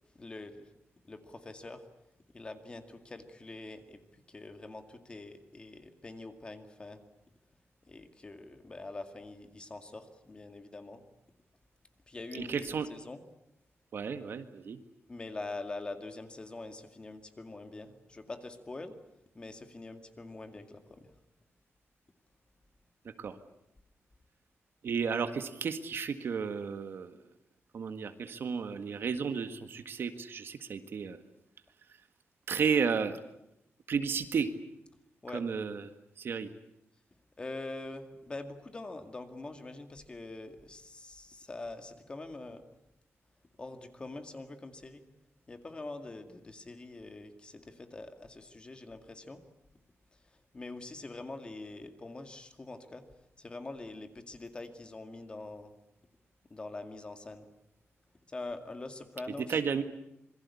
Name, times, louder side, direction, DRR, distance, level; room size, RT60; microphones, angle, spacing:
voice 1, 0.1-0.6 1.0-1.8 2.3-7.0 7.9-11.0 12.1-13.2 15.1-19.0 19.3-21.1 35.2-35.5 37.4-42.6 43.6-45.0 45.5-49.4 50.5-53.0 53.4-55.7 56.5-57.5 58.3-59.6, left 2 dB, 20° left, 7 dB, 2.2 m, -44 dB
voice 2, 12.3-12.9 13.9-14.8 23.2-23.3 24.8-27.2 27.7-31.2 32.5-33.2 33.9-34.5 35.3-35.9 36.2-36.5 59.5-59.8, right 6 dB, 55° right, 9 dB, 1.7 m, -32 dB
26.5 x 22.5 x 8.5 m, 0.85 s
wide cardioid pair, 175°, 5 cm